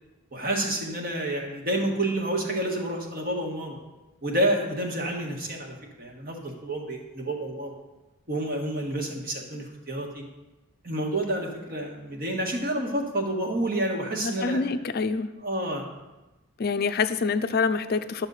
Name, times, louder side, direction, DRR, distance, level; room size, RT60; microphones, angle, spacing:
voice 1, 0.3-3.8 4.2-7.8 8.3-10.2 10.8-14.6 15.4-15.9, right 1 dB, 45° right, 1 dB, 1.5 m, -29 dB
voice 2, 14.2-15.3 16.6-18.3, left 4 dB, 50° left, 11 dB, 0.4 m, -26 dB
11.5 x 6.3 x 4.0 m, 1.1 s
head